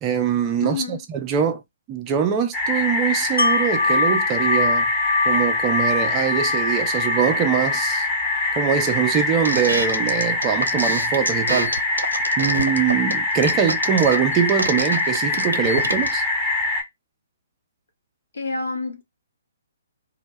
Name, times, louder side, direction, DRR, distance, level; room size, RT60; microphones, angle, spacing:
voice 1, 0.0-1.6 1.9-4.9 5.3-8.1 8.6-11.7 12.4-16.2, right 8 dB, 25° right, 0.4 m, -23 dB
voice 2, 0.6-1.0 18.3-19.0, left 4 dB, 60° left, 0.7 m, -28 dB
sound 1, 2.5-16.8, left 3 dB, 15° left, 0.8 m, -24 dB
Wind chime, 3.4-9.2 9.6-9.7, left 3 dB, 90° left, 0.4 m, -25 dB
sound 2, 9.5-16.1, right 1 dB, 80° right, 0.5 m, -27 dB
2.0 x 2.0 x 3.1 m
figure-of-eight pair, 125°, 0 cm